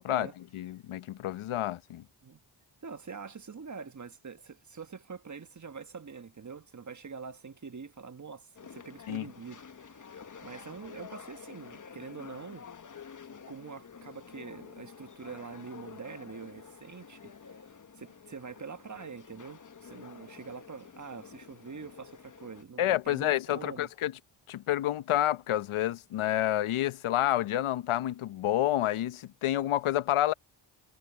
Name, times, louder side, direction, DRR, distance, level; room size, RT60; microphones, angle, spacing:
voice 1, 0.5-2.0 9.1-9.2 22.8-24.1 24.5-30.3, left 13 dB, 80° left, 0.8 m, -29 dB
voice 2, 2.8-12.7 13.5-17.3 18.0-23.9, right 5 dB, 35° right, 1.4 m, -45 dB
sound 1, 8.5-22.6, left 6 dB, 40° left, 1.2 m, -50 dB
cardioid pair, 60°, 49 cm